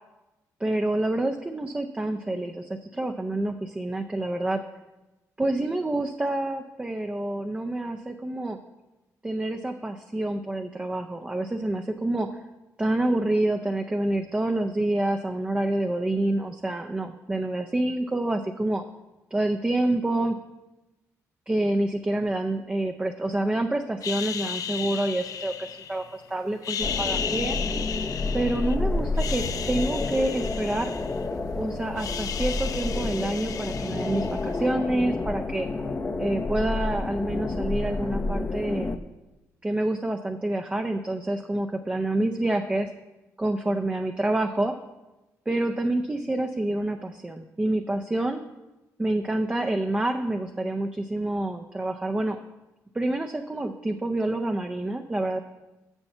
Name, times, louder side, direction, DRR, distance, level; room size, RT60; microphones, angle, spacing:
voice 1, 0.6-4.6 5.4-8.6 9.2-12.4 12.8-18.8 19.3-20.4 21.5-27.6 28.3-30.9 31.6-35.7 36.2-39.0 39.6-42.9 43.4-44.8 45.5-48.4 49.0-52.4 52.9-55.4, right 1 dB, 15° right, 5 dB, 0.6 m, -27 dB
sound 1, 24.0-26.2 26.6-28.8 29.1-31.5 31.8-34.6, left 7 dB, 65° left, 0.5 m, -34 dB
sound 2, 26.8-39.0, left 3 dB, 25° left, 0.6 m, -29 dB
7.2 x 6.8 x 6.7 m, 1.0 s
cardioid pair, 85°, 6 cm